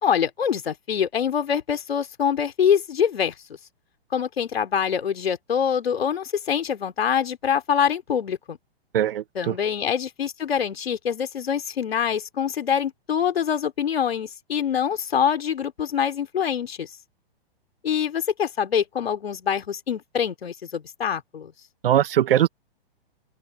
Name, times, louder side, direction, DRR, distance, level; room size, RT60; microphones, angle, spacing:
voice 1, 0.0-3.3 4.1-8.6 9.3-16.9 17.8-21.5, left 8 dB, 75° left, 3.4 m, -25 dB
voice 2, 8.9-9.5 21.8-22.5, right 11 dB, 60° right, 1.8 m, -20 dB
open air
hypercardioid pair, 120°, 31 cm